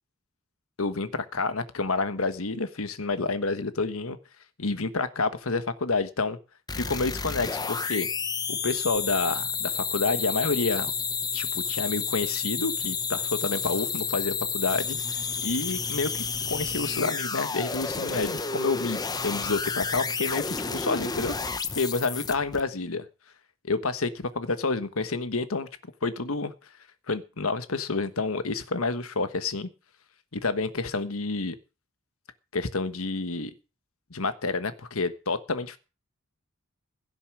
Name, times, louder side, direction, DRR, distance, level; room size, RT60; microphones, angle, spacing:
voice 1, 0.8-4.2 4.6-6.4 6.7-8.1 8.5-10.9 11.3-15.0 15.4-21.3 21.7-23.1 23.6-25.7 26.0-26.5 27.1-29.7 30.3-31.5 32.5-33.5 34.1-35.8, left 3 dB, 80° left, 12 dB, 1.3 m, -29 dB
sound 1, 6.7-22.6, left 5 dB, 20° left, 0.8 m, -31 dB
16.5 x 7.0 x 6.1 m, 0.32 s
head